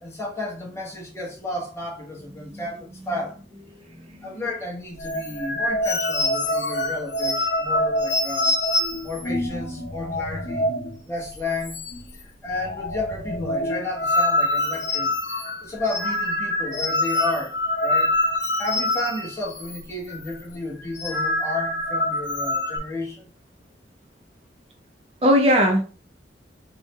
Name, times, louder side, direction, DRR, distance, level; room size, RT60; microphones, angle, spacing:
voice 1, 0.0-3.3 4.2-8.5 9.0-10.7 11.1-11.7 12.1-18.1 18.6-23.2, left 2 dB, 15° left, 1.2 m, -32 dB
voice 2, 3.8-4.4 25.2-25.8, equal, 35° right, 0.6 m, -20 dB
sound 1, 5.0-11.0 11.2-11.4 11.7-12.2 12.5-19.8 20.1-20.3 20.8-22.8, left 1 dB, 75° left, 0.8 m, -25 dB
3.6 x 3.3 x 3.1 m
head